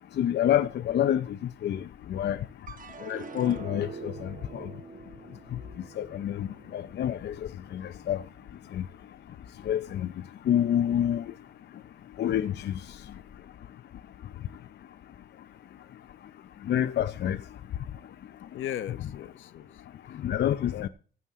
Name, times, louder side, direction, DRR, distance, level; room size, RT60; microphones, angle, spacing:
voice 1, 0.2-2.5 3.0-4.7 5.5-5.6 6.0-8.2 8.7-8.9 9.6-10.1 10.5-11.3 12.2-13.0 16.6-17.4 20.1-20.9, left 10 dB, 60° left, 0.6 m, -28 dB
sound 1, 2.7-9.1 9.5-10.2, right 5 dB, 45° right, 1.2 m, -46 dB
voice 2, 18.5-20.1 20.4-20.9, left 11 dB, 75° left, 1.0 m, -38 dB
15.0 x 9.2 x 3.7 m
cardioid pair, 90°, 20 cm